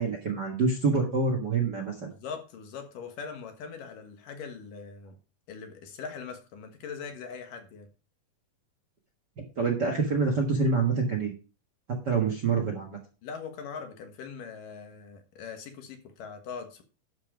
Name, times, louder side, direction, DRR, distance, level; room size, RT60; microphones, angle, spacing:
voice 1, 0.0-2.0 9.6-11.3 12.0-13.0, right 4 dB, 45° right, 2 dB, 1.5 m, -26 dB
voice 2, 2.1-5.2 5.5-7.9 13.2-16.8, left 6 dB, 70° left, 5 dB, 3.0 m, -41 dB
11.5 x 5.6 x 5.0 m, 0.35 s
omnidirectional pair, 4.1 m